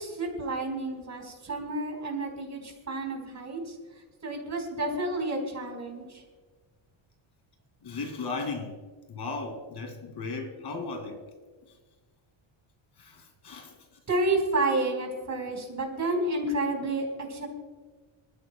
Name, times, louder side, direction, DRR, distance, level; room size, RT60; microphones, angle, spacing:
voice 1, 0.0-3.7 4.2-6.2 14.1-17.5, right 2 dB, 35° right, 1 dB, 4.2 m, -30 dB
voice 2, 7.8-8.8 9.1-11.2 13.0-13.7, left 3 dB, 55° left, 5 dB, 2.3 m, -36 dB
27.0 x 14.5 x 2.2 m, 1.4 s
cardioid pair, 135°, 48 cm